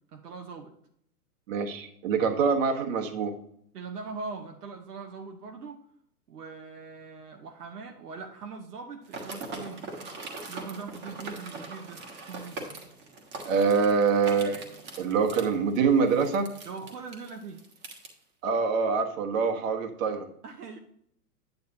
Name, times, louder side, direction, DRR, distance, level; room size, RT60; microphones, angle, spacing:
voice 1, 0.1-0.7 3.7-5.8 6.3-9.8 10.5-12.0 12.3-12.6 16.7-17.6 20.4-20.8, right 4 dB, 75° right, 3 dB, 1.1 m, -41 dB
voice 2, 1.5-3.3 13.4-14.7 15.0-16.5 18.4-20.3, right 5 dB, 55° right, 5 dB, 1.4 m, -25 dB
sound 1, 9.0-18.1, right 3 dB, 25° right, 1.3 m, -41 dB
9.4 x 7.9 x 2.8 m, 0.70 s
hypercardioid pair, 135°, 47 cm